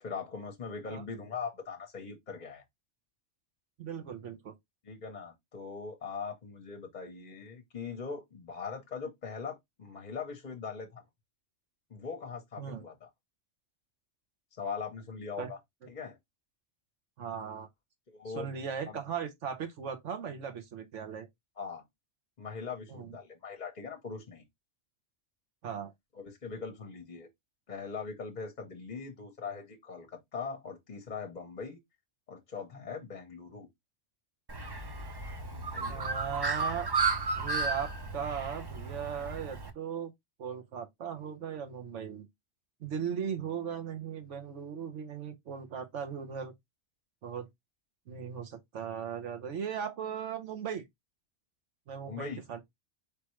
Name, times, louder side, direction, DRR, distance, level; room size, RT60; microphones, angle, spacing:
voice 1, 0.0-2.6 4.8-11.0 11.9-13.1 14.6-15.6 15.9-16.2 18.1-18.5 18.8-19.0 21.6-21.8 22.4-24.4 26.1-27.3 27.7-31.8 32.3-33.7 35.5-36.0 52.1-52.4, left 5 dB, 40° left, 0.9 m, -41 dB
voice 2, 3.8-4.5 12.6-12.8 15.4-15.5 17.2-17.7 18.3-21.3 22.9-23.1 25.6-25.9 35.9-36.9 37.4-40.1 40.4-42.3 42.8-46.5 47.2-47.5 48.1-50.8 51.9-52.6, right 7 dB, 85° right, 1.2 m, -38 dB
Bird, 34.5-39.7, right 4 dB, 30° right, 0.4 m, -33 dB
4.6 x 3.3 x 3.0 m
omnidirectional pair, 1.2 m